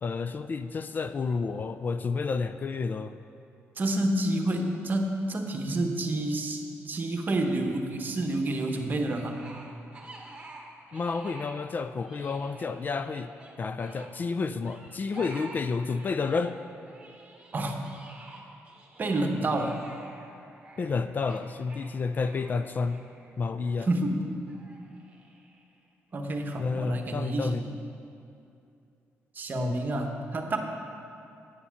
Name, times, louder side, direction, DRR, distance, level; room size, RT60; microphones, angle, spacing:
voice 1, 0.0-3.2 10.9-13.3 13.6-16.6 20.8-23.0 23.4-23.9 26.6-27.6 29.5-29.8, left 4 dB, 40° left, 11 dB, 0.3 m, -30 dB
voice 2, 3.8-9.4 17.5-17.8 19.0-19.8 23.9-24.2 26.1-27.6 29.3-30.6, right 1 dB, 40° right, 4 dB, 1.0 m, -29 dB
sound 1, 9.0-11.7 12.0-14.1 14.6-16.6 16.8-23.8 24.5-25.8, right 2 dB, 20° right, 1.4 m, -49 dB
9.0 x 7.0 x 5.8 m, 2.6 s
cardioid pair, 105°, 5 cm